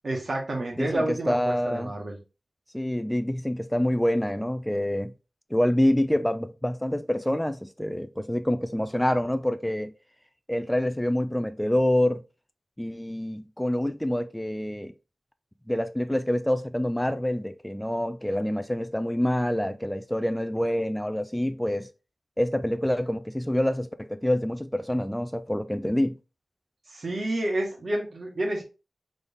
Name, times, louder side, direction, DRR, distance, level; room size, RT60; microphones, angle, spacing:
voice 1, 0.0-2.2 26.9-28.6, right 1 dB, 65° right, 1.6 m, -29 dB
voice 2, 0.8-1.9 2.7-5.1 5.5-9.9 10.5-12.2 12.8-14.9 15.7-21.9 22.4-26.2, left 1 dB, 5° left, 0.4 m, -26 dB
3.9 x 3.4 x 3.6 m
cardioid pair, 50°, 0 cm